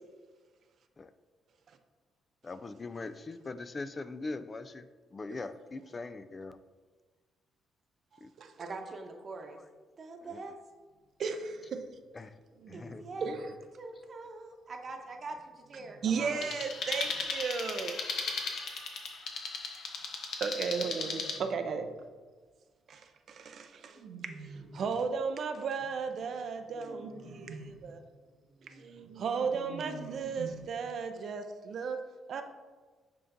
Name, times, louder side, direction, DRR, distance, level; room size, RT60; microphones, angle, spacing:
voice 1, 2.4-4.9 5.1-6.6 8.2-8.3 10.3-10.4 12.1-12.3 12.7-13.0, left 3 dB, 30° left, 12 dB, 0.3 m, -41 dB
voice 2, 8.6-9.6 10.0-10.6 12.7-13.3 13.8-16.6, right 3 dB, 45° right, 3 dB, 0.9 m, -43 dB
voice 3, 11.2-11.9 13.2-13.5 16.0-18.0 20.4-22.0 22.9-24.0 24.2-28.0 28.7-28.8 29.2-32.0 32.3-32.4, right 5 dB, 60° right, 7 dB, 0.4 m, -35 dB
sound 1, 11.4-11.9 12.5-13.5 14.9-17.3 20.6-22.1 23.8-25.0 25.8-30.6, right 3 dB, 90° right, 1.4 m, -49 dB
sound 2, 16.4-21.4, left 4 dB, 65° left, 0.8 m, -36 dB
10.0 x 3.7 x 2.6 m, 1.4 s
cardioid pair, 90°, 0 cm